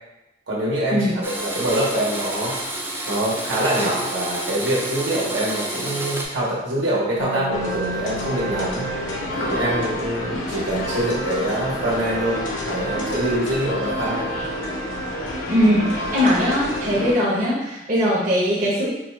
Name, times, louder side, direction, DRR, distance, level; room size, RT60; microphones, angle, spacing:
voice 1, 0.5-2.6 3.1-8.9 9.4-12.4 12.7-14.3, right 1 dB, 85° right, -6 dB, 1.2 m, -24 dB
Domestic sounds home sounds, 1.2-6.3, right 1 dB, 10° right, 0.4 m, -29 dB
sound 1, 7.2-10.7, right 1 dB, 60° left, 0.7 m, -35 dB
sound 2, 7.5-17.1, equal, 90° left, 0.8 m, -28 dB
voice 2, 15.5-18.9, equal, 45° right, -7 dB, 0.9 m, -20 dB
4.5 x 2.4 x 3.2 m, 0.94 s
head